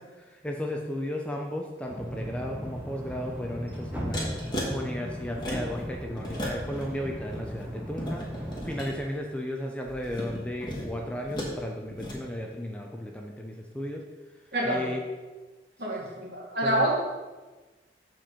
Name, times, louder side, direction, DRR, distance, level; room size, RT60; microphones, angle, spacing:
voice 1, 0.0-14.0 14.6-15.0 16.6-16.9, left 1 dB, 5° left, 1 dB, 0.6 m, -35 dB
sound 1, 1.9-8.8, equal, 10° right, 1.1 m, -37 dB
sound 2, 4.1-4.7 5.3-5.8 6.2-6.9 7.2-8.9 9.9-11.6 11.9-12.2, equal, 25° left, 1.5 m, -36 dB
voice 2, 14.5-14.8 15.8-16.9, right 1 dB, 60° right, -4 dB, 2.3 m, -27 dB
7.5 x 4.6 x 5.7 m, 1.2 s
head